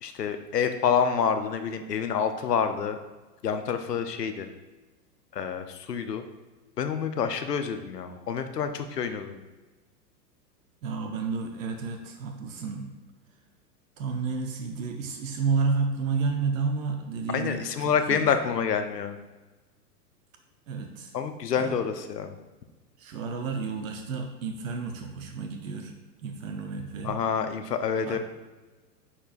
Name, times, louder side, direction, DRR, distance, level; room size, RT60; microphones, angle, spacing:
voice 1, 0.0-3.0 3.4-4.5 5.3-6.2 6.8-9.4 17.3-19.2 21.1-22.3 27.0-28.2, left 7 dB, 75° left, 8 dB, 0.8 m, -27 dB
voice 2, 10.8-12.9 14.0-18.3 20.7-21.1 21.6-21.8 23.0-26.0 26.2-27.2 28.1-28.2, right 4 dB, 55° right, 4 dB, 0.9 m, -31 dB
9.6 x 4.5 x 2.5 m, 1.2 s
figure-of-eight pair, 100°, 49 cm